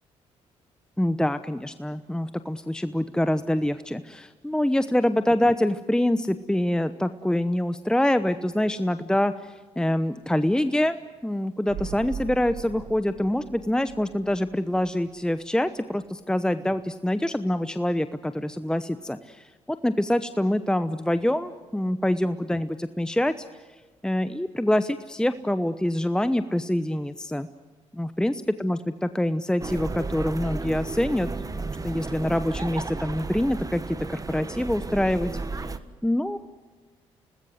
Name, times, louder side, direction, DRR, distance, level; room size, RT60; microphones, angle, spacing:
voice 1, 1.0-11.0 11.2-19.5 19.8-23.4 24.0-27.5 27.9-28.3 28.6-31.3 31.8-35.3 36.0-36.4, left 1 dB, 5° left, 11 dB, 0.9 m, -25 dB
sound 1, 11.7-15.4 15.7-15.8, right 8 dB, 70° right, 1.2 m, -40 dB
sound 2, 29.6-35.8, right 3 dB, 25° right, 1.4 m, -33 dB
26.0 x 19.5 x 7.9 m, 1.4 s
supercardioid pair, 60°, 13 cm